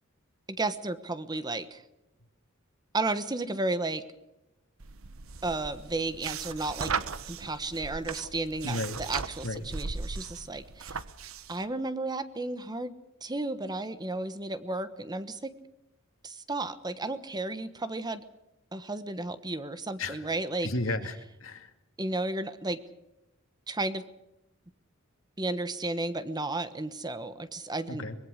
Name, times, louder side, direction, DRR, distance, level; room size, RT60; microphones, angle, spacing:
voice 1, 0.5-1.8 2.9-4.0 5.4-6.9 7.3-11.0 11.5-12.9 13.2-15.5 16.2-18.2 18.7-20.7 22.0-22.8 23.7-24.0 25.4-28.1, right 2 dB, 20° right, 12 dB, 1.2 m, -33 dB
sound 1, 4.8-11.6, right 5 dB, 75° right, 1.2 m, -37 dB
voice 2, 8.6-9.0 9.4-9.6 20.0-20.2 20.6-21.7 27.9-28.2, left 2 dB, 70° left, 7 dB, 2.5 m, -33 dB
23.5 x 21.5 x 6.5 m, 0.91 s
head